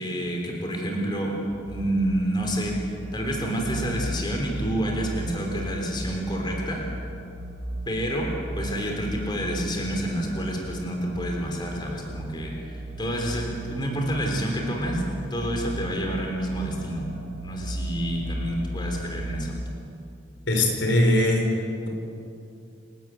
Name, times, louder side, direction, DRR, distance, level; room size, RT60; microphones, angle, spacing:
voice 1, 0.0-1.3 1.6-2.7 3.1-6.8 7.9-12.5 13.0-15.0 15.3-17.1 17.4-19.6, right 1 dB, 25° left, 0 dB, 3.5 m, -28 dB
sound 1, 1.5-19.6, equal, 80° right, 3.4 m, -36 dB
voice 2, 20.5-21.5, left 1 dB, 80° left, 2 dB, 4.6 m, -20 dB
29.0 x 13.0 x 9.1 m, 2.6 s
head